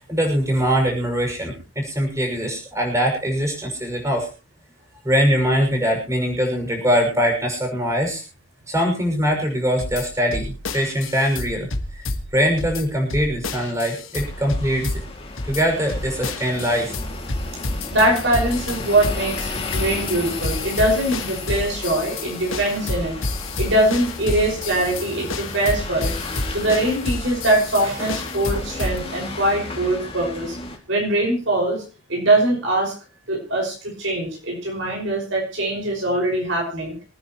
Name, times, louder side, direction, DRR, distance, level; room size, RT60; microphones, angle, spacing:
voice 1, 0.1-4.3 5.0-8.2 8.7-12.0 12.3-15.0 15.4-17.0, equal, 15° right, 2 dB, 6.0 m, -22 dB
sound 1, 9.8-29.0, left 2 dB, 80° left, 1.7 m, -30 dB
sound 2, 14.1-30.8, left 3 dB, 30° left, 2.4 m, -34 dB
voice 2, 17.9-23.2 23.6-26.2 26.5-30.6 30.9-31.8 32.1-32.9 33.3-36.9, right 1 dB, 65° right, 0 dB, 5.8 m, -22 dB
26.5 x 9.9 x 3.1 m, 0.32 s
head